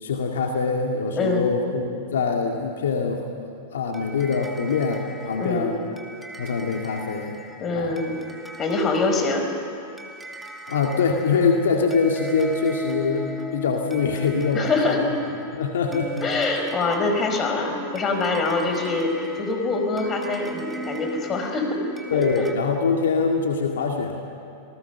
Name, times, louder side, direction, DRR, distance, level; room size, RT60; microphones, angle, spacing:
voice 1, 0.0-3.2 3.7-5.7 6.4-7.3 7.7-7.9 10.7-15.1 15.6-16.1 16.5-16.6 22.1-24.2, left 5 dB, 75° left, 2 dB, 2.1 m, -24 dB
voice 2, 1.2-1.5 5.4-5.7 7.6-8.2 8.6-9.5 14.5-15.0 16.2-21.8 22.1-22.5, left 3 dB, 30° left, 4 dB, 4.7 m, -24 dB
sound 1, 3.9-22.5, right 1 dB, 5° right, 2.4 m, -38 dB
28.0 x 19.0 x 7.0 m, 2.5 s
hypercardioid pair, 100°, 0 cm